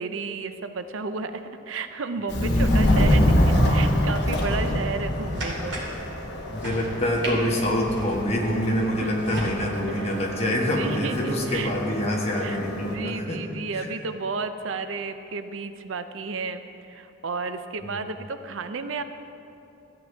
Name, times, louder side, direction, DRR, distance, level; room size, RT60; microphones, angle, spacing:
voice 1, 0.0-5.8 9.0-9.1 9.5-9.6 9.9-11.7 12.3-19.0, right 4 dB, 80° right, 10 dB, 0.5 m, -33 dB
Subway metro underground, 2.3-12.9, left 1 dB, 55° left, 1.2 m, -26 dB
voice 2, 2.4-3.3 6.5-13.4 13.7-13.9 17.8-17.9, equal, 30° left, -2 dB, 1.3 m, -26 dB
sound 1, 4.3-9.5, right 1 dB, 65° right, 2.4 m, -37 dB
14.0 x 9.3 x 3.4 m, 2.8 s
head